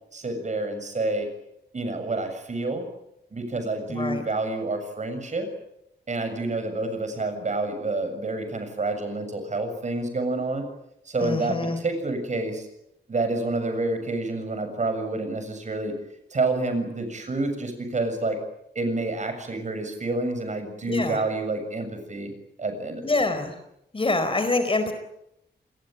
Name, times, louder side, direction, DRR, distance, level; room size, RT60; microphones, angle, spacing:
voice 1, 0.1-1.3 1.7-2.9 3.3-5.5 6.1-10.7 11.1-12.7 13.1-15.9 16.3-18.4 18.8-22.3 22.6-23.3, right 2 dB, 40° right, 7 dB, 7.2 m, -28 dB
voice 2, 3.9-4.2 11.2-11.8 20.8-21.2 23.0-23.6 23.9-24.9, left 2 dB, 30° left, 9 dB, 4.5 m, -25 dB
28.5 x 21.5 x 9.2 m, 0.81 s
wide cardioid pair, 160°, 18 cm